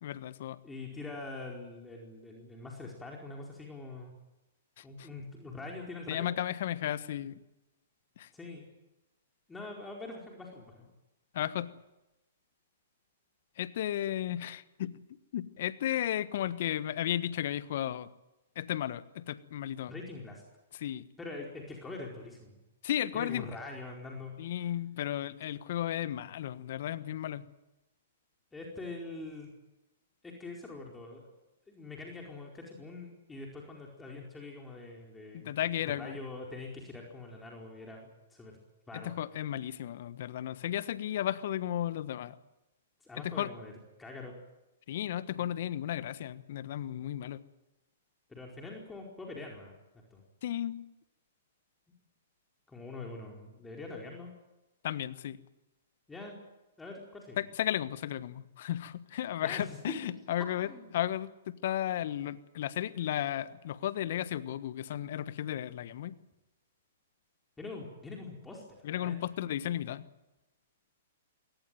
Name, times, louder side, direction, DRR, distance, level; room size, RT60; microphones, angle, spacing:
voice 1, 0.0-0.6 5.0-5.1 6.1-7.4 8.2-8.3 11.3-11.7 13.6-15.0 15.3-18.1 18.5-19.9 20.8-21.0 22.8-23.5 24.4-27.5 35.3-36.2 38.9-42.3 43.2-43.5 44.9-47.4 50.4-50.8 54.8-55.4 57.4-60.7 60.9-61.3 61.6-66.1 68.8-70.1, left 11 dB, 60° left, 14 dB, 1.3 m, -34 dB
voice 2, 0.6-4.1 4.8-6.3 8.3-8.7 9.5-10.9 19.9-20.4 21.2-22.6 23.1-24.3 28.5-29.5 30.2-31.3 31.7-35.5 35.8-38.6 38.9-39.1 43.0-43.7 44.0-44.4 45.3-45.4 48.3-50.2 52.7-54.3 56.1-56.4 56.8-57.4 59.4-59.9 60.6-61.0 67.6-69.2, left 3 dB, 10° left, -1 dB, 4.6 m, -44 dB
22.5 x 18.5 x 9.3 m, 0.99 s
hypercardioid pair, 120°, 0 cm